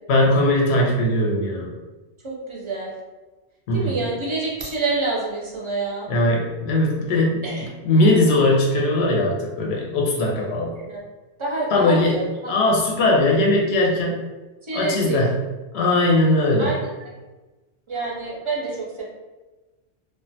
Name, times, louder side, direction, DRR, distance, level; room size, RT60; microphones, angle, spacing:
voice 1, 0.1-1.7 3.7-4.0 6.1-7.5 7.8-10.7 11.7-14.2 14.7-15.4 15.7-16.8, left 1 dB, 85° left, -1 dB, 0.9 m, -19 dB
voice 2, 2.2-2.9 3.7-6.1 7.4-7.7 10.8-11.0 11.4-12.3 14.6-15.2 16.6-16.8 17.9-19.0, right 3 dB, 45° right, -4 dB, 0.4 m, -27 dB
2.4 x 2.2 x 2.6 m, 1.2 s
omnidirectional pair, 1.1 m